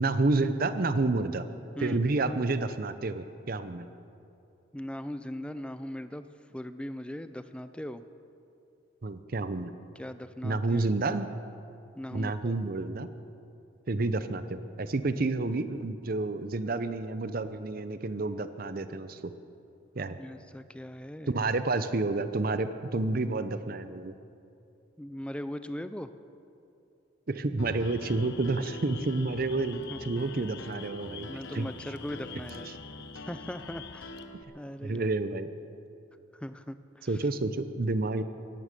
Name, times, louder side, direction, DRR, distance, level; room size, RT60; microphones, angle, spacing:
voice 1, 0.0-1.5 1.8-3.9 9.0-9.7 10.4-11.3 12.1-13.1 13.9-19.3 20.0-20.2 21.3-24.1 27.3-31.3 31.5-31.7 34.8-35.5 37.1-38.2, right 3 dB, 45° right, 11 dB, 0.7 m, -29 dB
voice 2, 4.7-6.2 6.5-8.0 10.0-10.8 12.0-12.6 20.2-21.3 25.0-26.1 29.9-30.0 31.3-32.7 33.3-34.1 34.5-35.1 36.3-37.2, left 1 dB, 5° left, 12 dB, 0.4 m, -39 dB
Piano, 27.6-34.4, left 1 dB, 80° left, 1.0 m, -45 dB
sound 1, 27.8-34.2, left 9 dB, 55° left, 0.8 m, -48 dB
17.0 x 11.5 x 6.8 m, 2.6 s
head